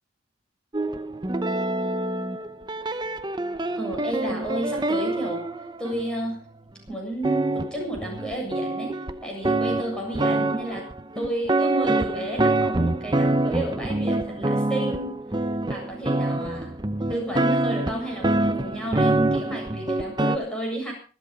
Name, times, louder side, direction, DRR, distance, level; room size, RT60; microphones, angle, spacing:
sound 1, 0.7-6.3 6.9-7.0 7.2-20.4, right 2 dB, 20° right, 0.8 m, -26 dB
voice 1, 3.8-5.4 5.8-6.4 6.9-9.0 9.2-10.9 11.1-15.1 15.7-16.7 17.1-20.9, right 1 dB, 5° left, -1 dB, 7.6 m, -31 dB
25.0 x 8.4 x 5.3 m, 0.39 s
head